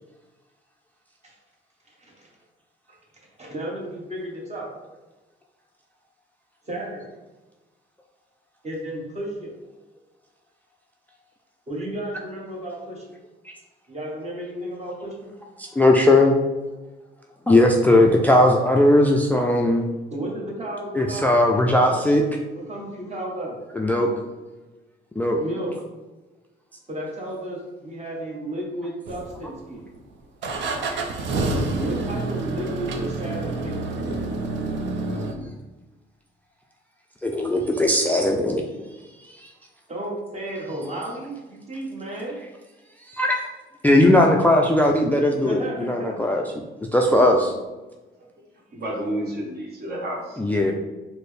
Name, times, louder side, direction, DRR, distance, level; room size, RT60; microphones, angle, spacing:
voice 1, 1.8-2.3 2.9-3.0 3.4-4.7 6.6-7.1 8.6-9.5 11.7-13.1 13.9-15.3 20.1-22.1 22.5-23.6 25.3-25.8 26.9-29.9 31.8-34.1 39.9-42.4 45.4-46.5, right 1 dB, 35° right, -3 dB, 1.2 m, -33 dB
voice 2, 15.6-16.3 17.5-19.8 21.0-22.2 23.8-24.1 25.2-25.4 30.9-31.0 37.2-38.6 43.1-43.5 43.8-46.4 46.9-47.5 50.4-50.7, left 1 dB, 10° left, 1 dB, 0.3 m, -18 dB
sound 1, 29.1-29.7 30.4-35.3, right 3 dB, 70° right, 0.6 m, -28 dB
voice 3, 48.7-50.7, right 1 dB, 55° right, -3 dB, 1.2 m, -31 dB
4.2 x 2.1 x 3.3 m, 1.2 s
cardioid pair, 90°, 20 cm